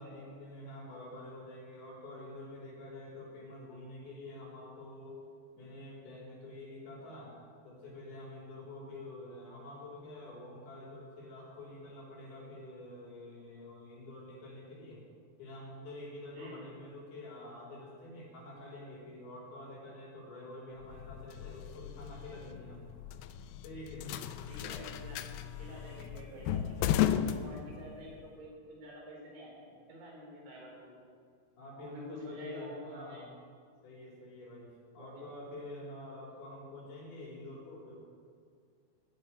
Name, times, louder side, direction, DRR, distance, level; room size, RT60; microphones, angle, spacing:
voice 1, 0.0-5.2 5.6-7.3 7.6-15.0 15.4-22.9 23.6-24.1 31.6-33.3 33.8-34.7 34.9-38.0, left 1 dB, 65° left, -3 dB, 5.5 m, -47 dB
sound 1, 20.8-28.1, left 10 dB, 85° left, 2.2 m, -35 dB
voice 2, 24.5-25.2 25.6-31.0 31.8-33.2 35.0-35.2, equal, 90° right, -1 dB, 6.0 m, -48 dB
13.5 x 9.2 x 9.9 m, 2.1 s
omnidirectional pair, 4.9 m